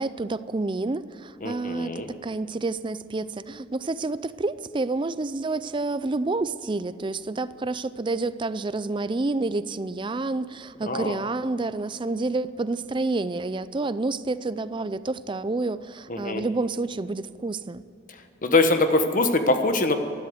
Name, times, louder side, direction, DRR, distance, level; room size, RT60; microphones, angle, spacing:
voice 1, 0.0-17.8, right 3 dB, 25° right, 15 dB, 0.4 m, -29 dB
voice 2, 1.4-2.1 10.9-11.2 16.1-16.4 18.4-20.0, left 2 dB, 45° left, 7 dB, 1.2 m, -23 dB
13.5 x 12.0 x 7.9 m, 2.7 s
head